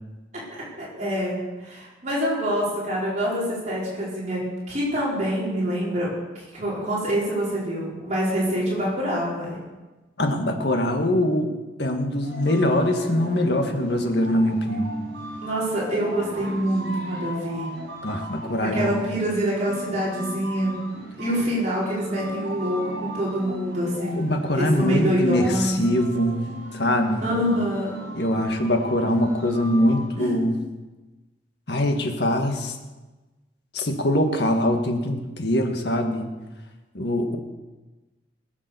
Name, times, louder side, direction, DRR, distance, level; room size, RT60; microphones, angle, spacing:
voice 1, 0.3-6.1 6.5-9.6 15.4-17.7 18.6-20.8 21.2-25.8 27.2-28.0 30.2-30.4, equal, 40° right, -6 dB, 4.8 m, -26 dB
voice 2, 10.2-11.5 11.8-14.9 18.0-18.9 24.2-26.5 26.7-27.2 28.1-30.6 31.7-32.7 33.7-36.3 36.9-37.4, left 1 dB, 60° left, 4 dB, 1.9 m, -23 dB
sound 1, 12.2-30.1, left 1 dB, 65° right, 6.1 m, -37 dB
20.5 x 7.3 x 7.0 m, 1.2 s
head